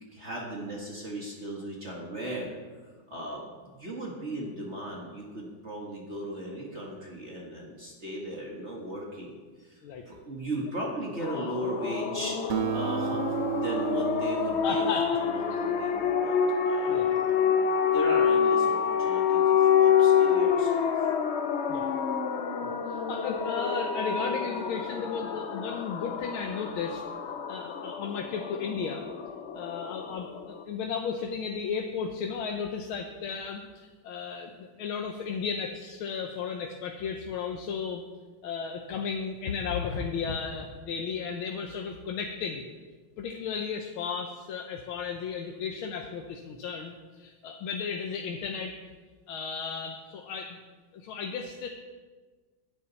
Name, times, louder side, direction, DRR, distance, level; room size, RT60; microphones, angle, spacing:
voice 1, 0.1-2.6 3.1-9.8 10.1-14.9 15.2-16.4 16.7-17.6 17.9-21.1, right 1 dB, 35° right, -3 dB, 1.9 m, -37 dB
sound 1, 11.2-30.6, left 7 dB, 70° left, 0.6 m, -27 dB
Acoustic guitar, 12.5-17.3, right 11 dB, 60° right, 0.9 m, -34 dB
voice 2, 14.6-15.2 16.9-17.1 21.7-21.9 22.6-27.0 27.5-29.0 29.5-38.0 38.4-42.7 43.2-48.7 49.3-50.6 50.9-51.7, left 6 dB, 90° left, 3 dB, 1.7 m, -34 dB
16.0 x 10.0 x 4.1 m, 1.4 s
omnidirectional pair, 2.2 m